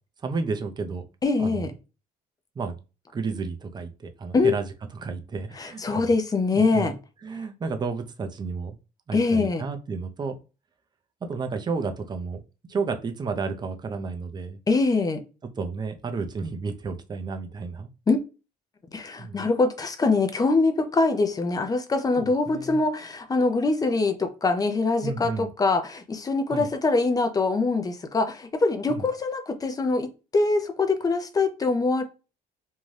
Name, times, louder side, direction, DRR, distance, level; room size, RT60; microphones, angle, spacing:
voice 1, 0.2-1.0 1.4-1.7 2.6-2.8 3.1-4.7 4.9-6.0 6.5-6.9 7.2-8.8 9.1-10.4 11.2-14.6 15.6-17.9 19.2-19.5 22.2-22.8 25.0-25.5 26.5-26.7 28.9-29.0, right 4 dB, 25° right, 0.5 m, -32 dB
voice 2, 1.2-1.7 4.3-4.5 5.6-6.9 9.1-9.6 14.7-15.2 18.1-18.2 18.9-30.1 30.3-32.0, left 3 dB, 20° left, 0.5 m, -23 dB
2.6 x 2.2 x 3.2 m
cardioid pair, 110°, 17 cm